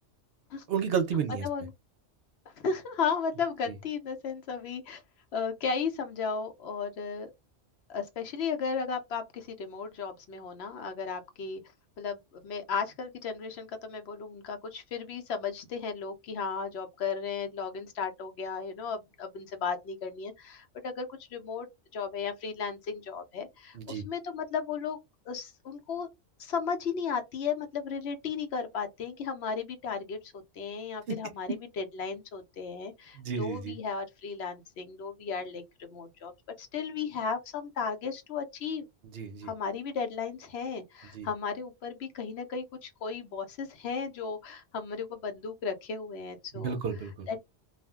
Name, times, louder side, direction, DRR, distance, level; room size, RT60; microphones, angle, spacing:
voice 1, 0.7-1.5 23.7-24.1 31.1-31.2 33.1-33.8 39.1-39.5 41.1-41.3 46.5-47.3, right 6 dB, 65° right, 0.8 m, -31 dB
voice 2, 2.6-5.0 5.3-7.3 7.9-11.6 12.0-21.7 21.9-25.0 25.3-26.1 26.4-36.3 36.6-38.9 39.4-46.8 47.3-47.4, left 5 dB, 70° left, 0.9 m, -35 dB
2.4 x 2.1 x 3.5 m
omnidirectional pair, 1.2 m